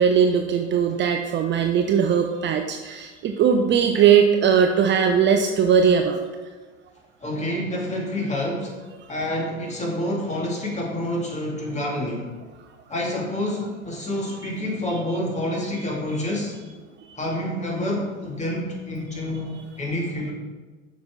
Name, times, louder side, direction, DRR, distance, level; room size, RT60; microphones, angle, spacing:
voice 1, 0.0-6.2, right 7 dB, 30° right, 5 dB, 0.6 m, -19 dB
voice 2, 7.2-8.7 9.1-12.3 12.9-16.6 17.2-20.3, left 1 dB, 20° left, -2 dB, 2.5 m, -28 dB
8.5 x 6.1 x 3.8 m, 1.3 s
hypercardioid pair, 90°, 35 cm